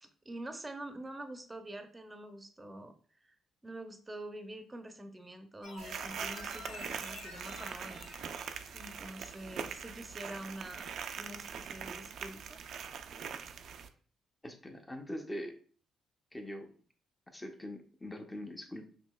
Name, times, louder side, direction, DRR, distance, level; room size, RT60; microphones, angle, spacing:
voice 1, 0.0-2.9 3.2-3.4 3.6-8.3 8.7-10.9 11.2-12.6, right 1 dB, 20° right, 7 dB, 0.6 m, -46 dB
sound 1, 5.6-9.8 10.2-10.3, left 3 dB, 85° left, 1.2 m, -50 dB
sound 2, 5.8-13.9, right 7 dB, 65° right, 0.4 m, -42 dB
voice 2, 14.4-15.6 16.3-16.7 17.3-18.9, left 1 dB, 15° left, 4 dB, 0.7 m, -42 dB
5.3 x 2.9 x 2.3 m, 0.43 s
cardioid pair, 90°, 0 cm